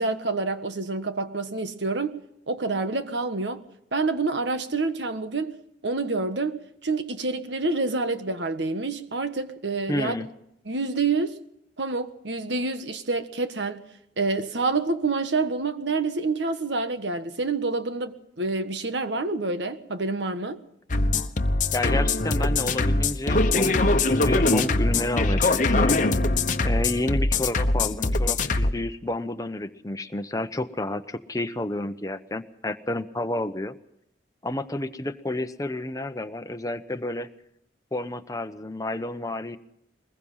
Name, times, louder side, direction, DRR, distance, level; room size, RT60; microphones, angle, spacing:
voice 1, 0.0-2.2 2.5-3.6 3.9-10.1 10.6-11.4 11.8-13.8 14.2-20.6, right 3 dB, 75° right, 1.5 m, -27 dB
voice 2, 9.9-10.3 21.7-26.0 26.6-33.7 34.4-37.3 37.9-39.6, left 1 dB, 20° left, 1.0 m, -30 dB
sound 1, 20.9-28.7, left 2 dB, 45° left, 1.1 m, -22 dB
22.5 x 21.0 x 5.7 m
head